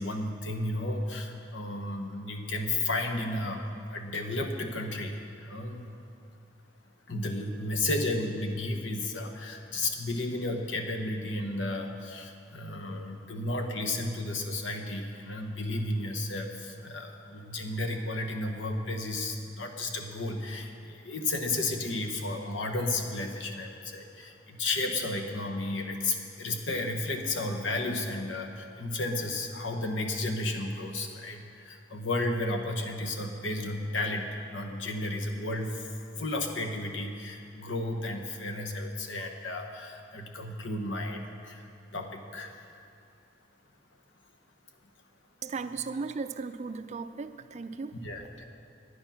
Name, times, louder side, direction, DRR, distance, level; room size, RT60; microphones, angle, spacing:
voice 1, 0.0-3.6 3.9-5.9 7.1-42.6 48.0-48.4, left 2 dB, 90° left, 3 dB, 1.1 m, -33 dB
voice 2, 45.4-48.0, right 4 dB, 40° right, 11 dB, 0.4 m, -36 dB
10.5 x 9.7 x 5.7 m, 2.5 s
head